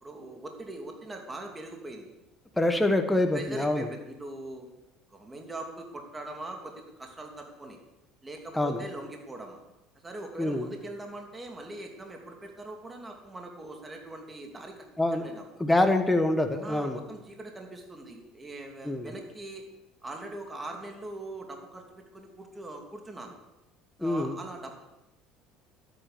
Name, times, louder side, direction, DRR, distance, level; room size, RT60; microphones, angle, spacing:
voice 1, 0.0-2.1 3.3-4.7 5.1-6.7 7.0-7.8 8.2-9.6 10.0-14.9 15.2-15.4 16.6-19.6 20.0-23.4 24.0-24.8, right 2 dB, 20° right, 2 dB, 2.7 m, -41 dB
voice 2, 2.6-3.9 8.5-8.8 10.4-10.7 15.0-15.3 15.6-17.0 18.8-19.1 24.0-24.3, left 1 dB, 10° left, 5 dB, 1.3 m, -25 dB
12.0 x 9.3 x 6.8 m, 0.95 s
supercardioid pair, 90°, 0 cm